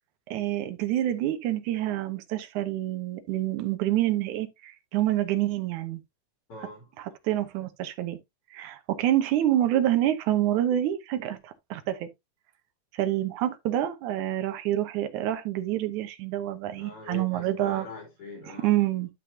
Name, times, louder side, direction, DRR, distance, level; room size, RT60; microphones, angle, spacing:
voice 1, 0.3-6.0 7.0-8.2 8.5-12.1 12.9-17.9 18.6-19.1, right 13 dB, 70° right, 2.3 m, -27 dB
voice 2, 6.5-6.9 16.8-18.8, left 3 dB, 45° left, 3.9 m, -43 dB
12.0 x 5.8 x 2.8 m
omnidirectional pair, 3.7 m